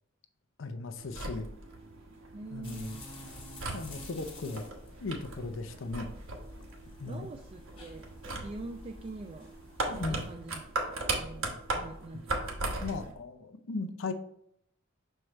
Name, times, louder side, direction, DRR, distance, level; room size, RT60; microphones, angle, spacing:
voice 1, 0.6-1.5 2.5-2.9 3.7-4.7 5.0-6.1 7.0-7.3 9.9-10.2 12.8-14.1, left 3 dB, 70° left, 9 dB, 0.6 m, -37 dB
sound 1, 1.0-13.1, right 2 dB, 75° right, 1.2 m, -38 dB
voice 2, 2.3-3.0 7.0-9.5 9.9-11.5 11.7-12.4 13.0-13.1, right 3 dB, 30° right, 3 dB, 0.4 m, -45 dB
sound 2, 2.6-10.3, left 1 dB, 25° left, 1.5 m, -50 dB
6.4 x 4.6 x 3.2 m, 0.71 s
head